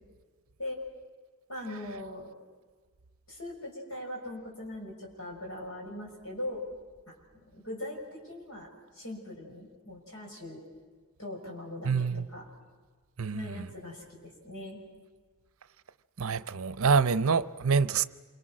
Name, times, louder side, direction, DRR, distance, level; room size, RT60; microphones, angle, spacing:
voice 1, 1.5-2.3 3.3-6.6 7.5-8.7 8.9-10.6 11.2-12.1 12.3-12.4 13.3-14.8, left 1 dB, 70° left, 6.6 m, -40 dB
voice 2, 11.8-12.3 13.2-13.7 16.2-18.1, right 5 dB, 70° right, 0.6 m, -26 dB
27.5 x 25.5 x 6.2 m
head